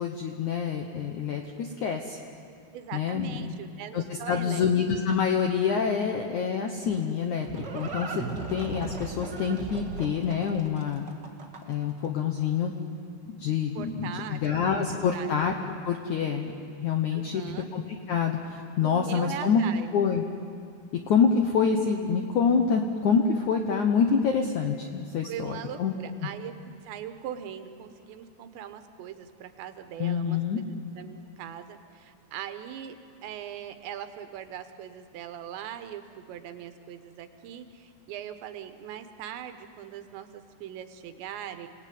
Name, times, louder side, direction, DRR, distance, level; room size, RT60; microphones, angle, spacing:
voice 1, 0.0-2.2 2.9-3.5 3.9-8.2 8.5-11.0 11.7-12.7 13.3-15.5 15.9-16.5 16.8-17.4 17.7-17.8 18.1-19.6 19.9-20.2 20.9-25.9 30.0-30.6, left 6 dB, 75° left, 3 dB, 1.8 m, -26 dB
voice 2, 2.7-4.7 13.7-15.4 17.1-17.7 18.8-19.9 25.2-33.0 33.2-41.7, right 10 dB, 80° right, 8 dB, 3.4 m, -40 dB
Livestock farm animals working animals, 6.8-11.9, right 4 dB, 55° right, 1.2 m, -37 dB
29.0 x 19.0 x 9.4 m, 2.4 s
omnidirectional pair, 5.2 m